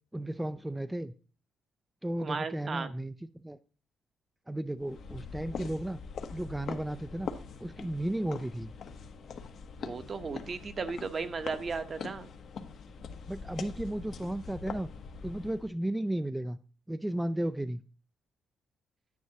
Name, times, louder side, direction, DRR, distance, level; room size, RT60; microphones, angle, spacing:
voice 1, 0.1-1.1 2.0-3.6 4.5-6.0 6.3-7.3 7.6-8.7 13.3-14.9 15.2-16.6 16.9-17.8, right 1 dB, 10° right, 10 dB, 0.4 m, -34 dB
voice 2, 2.2-2.9 9.8-12.3, right 4 dB, 40° right, 10 dB, 0.9 m, -35 dB
sound 1, 4.8-15.7, left 5 dB, 65° left, 1.0 m, -43 dB
9.5 x 9.4 x 2.9 m, 0.36 s
cardioid pair, 90°, 0 cm